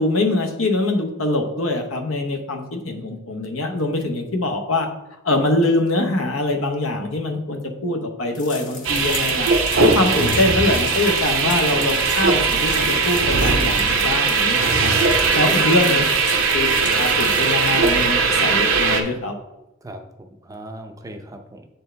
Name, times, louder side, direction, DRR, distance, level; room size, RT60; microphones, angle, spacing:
voice 1, 0.0-4.9 5.2-9.5 9.8-16.0 16.5-19.3, left 2 dB, 80° left, 4 dB, 0.9 m, -23 dB
sound 1, 8.3-18.1, left 4 dB, 40° left, 0.9 m, -35 dB
sound 2, 8.8-19.0, right 4 dB, 75° right, 0.8 m, -19 dB
voice 2, 15.4-16.1 19.8-21.7, right 1 dB, 15° right, 5 dB, 0.5 m, -37 dB
7.5 x 4.4 x 3.3 m, 0.95 s
head